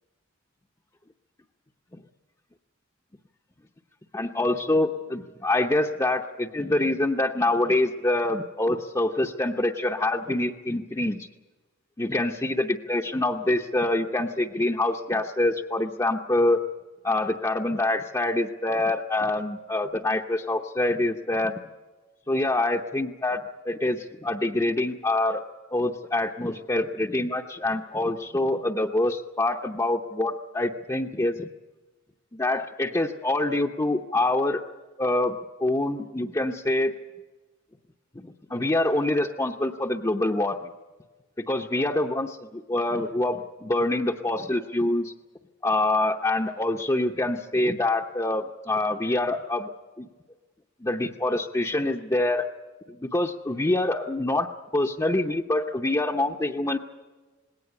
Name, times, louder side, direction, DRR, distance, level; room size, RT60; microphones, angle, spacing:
voice 1, 4.1-11.3 12.0-16.6 17.0-21.6 22.3-25.4 25.7-31.5 32.3-34.6 35.0-36.9 38.1-40.6 41.5-45.1 45.6-49.7 50.0-50.1 50.8-52.5 52.9-56.8, left 2 dB, 15° left, 0 dB, 0.8 m, -25 dB
19.5 x 17.5 x 9.8 m, 1.3 s
head